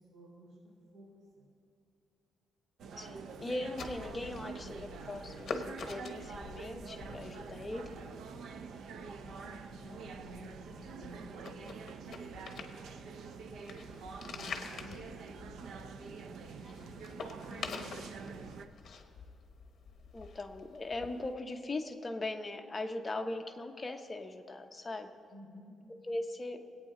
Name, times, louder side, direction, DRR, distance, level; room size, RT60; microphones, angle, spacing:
voice 1, 0.1-0.5 0.9-1.1 1.4-1.5 9.3-11.5 11.8-12.7 14.2-15.1 15.4-15.5 16.1-18.7 25.3-25.7, right 1 dB, 90° right, -7 dB, 3.6 m, -54 dB
sound 1, 2.8-18.7, right 5 dB, 70° right, 0.6 m, -46 dB
voice 2, 3.0-7.9 13.8-14.0 20.1-25.1 26.0-26.6, left 2 dB, 20° left, 4 dB, 0.8 m, -40 dB
sound 2, 3.8-21.3, left 5 dB, 50° left, 0.9 m, -47 dB
21.5 x 8.7 x 3.7 m, 2.4 s
cardioid pair, 150°, 0 cm